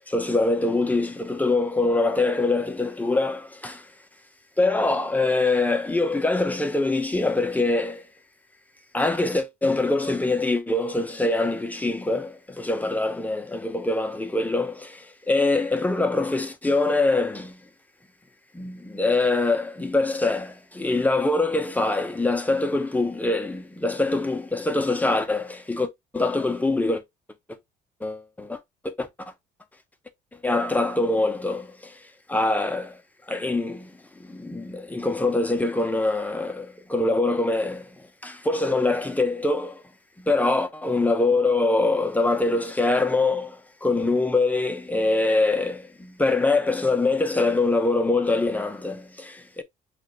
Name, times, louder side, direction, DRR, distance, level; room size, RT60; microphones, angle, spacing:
voice 1, 0.1-3.9 4.6-8.0 8.9-17.6 18.5-27.0 27.5-27.6 28.0-28.6 28.8-29.3 30.4-32.0 32.3-33.0 33.3-33.9 34.2-39.8 40.2-49.6, left 2 dB, 10° left, 0.9 m, -24 dB
6.3 x 2.6 x 3.1 m
cardioid pair, 110°, 17 cm